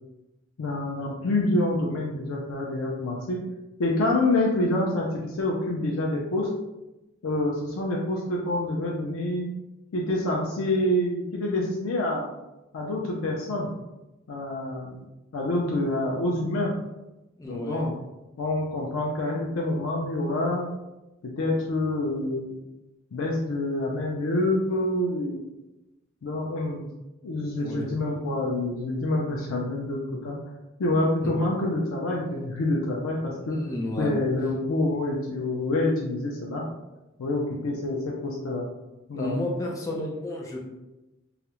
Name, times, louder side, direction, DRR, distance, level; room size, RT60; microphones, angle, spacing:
voice 1, 0.6-3.4 3.8-6.5 7.2-9.5 9.9-12.3 12.7-13.7 14.3-15.0 15.3-16.7 17.5-17.9 18.4-20.7 21.2-22.6 23.1-25.4 26.2-26.9 27.2-30.4 30.8-33.6 34.0-36.6 37.2-38.7 39.1-39.4, left 1 dB, 90° left, -2 dB, 0.4 m, -27 dB
voice 2, 17.4-17.8 27.5-27.9 31.2-31.3 33.5-34.2 39.1-40.6, left 1 dB, 15° left, -1 dB, 0.4 m, -32 dB
2.3 x 2.0 x 2.9 m, 0.99 s
head